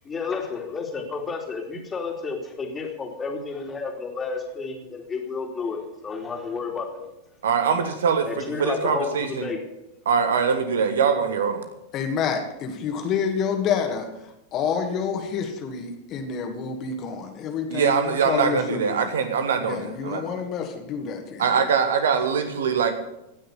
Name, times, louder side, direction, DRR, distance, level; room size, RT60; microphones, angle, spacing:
voice 1, 0.1-7.0 8.3-9.6, left 4 dB, 20° left, 1 dB, 3.1 m, -31 dB
voice 2, 7.4-9.5 10.0-11.7 17.7-20.3 21.4-22.9, right 6 dB, 65° right, 8 dB, 1.6 m, -23 dB
voice 3, 11.9-14.1 14.5-19.1 19.6-20.6 20.9-21.7, left 6 dB, 35° left, 4 dB, 2.4 m, -28 dB
17.5 x 6.5 x 8.4 m, 0.89 s
figure-of-eight pair, 90°, 0 cm